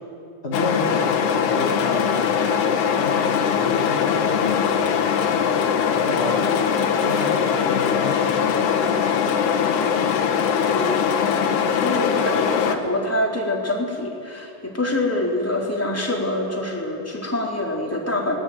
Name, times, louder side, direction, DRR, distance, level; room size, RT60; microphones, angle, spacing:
voice 1, 0.4-2.7 3.0-8.9, left 2 dB, 30° left, -2 dB, 1.2 m, -32 dB
sound 1, 0.5-12.8, left 7 dB, 85° left, 3.8 m, -21 dB
voice 2, 10.7-18.4, left 1 dB, 5° left, -2 dB, 3.2 m, -26 dB
22.5 x 20.0 x 9.5 m, 2.6 s
omnidirectional pair, 4.6 m